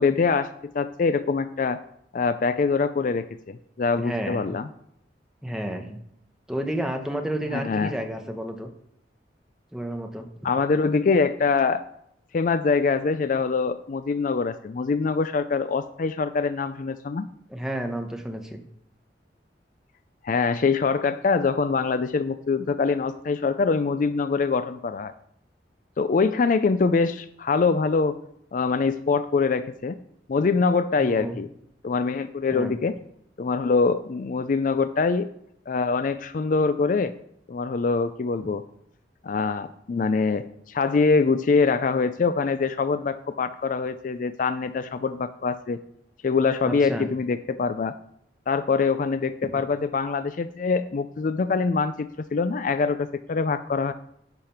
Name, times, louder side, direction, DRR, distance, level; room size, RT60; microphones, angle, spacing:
voice 1, 0.0-1.8 2.1-4.7 7.5-7.9 10.4-11.8 12.3-17.3 20.2-25.1 26.0-28.2 28.5-30.0 30.3-31.5 31.8-33.0 33.4-35.3 35.7-37.1 37.5-38.6 39.2-45.8 46.2-48.0 48.5-53.9, left 4 dB, 45° left, 12 dB, 0.4 m, -24 dB
voice 2, 4.0-4.5 5.4-6.0 6.5-8.7 9.7-10.5 17.5-18.6 31.0-31.4 32.5-32.7 46.6-47.1 49.5-49.6, right 1 dB, 5° right, 3 dB, 1.0 m, -31 dB
10.5 x 5.1 x 5.7 m, 0.73 s
head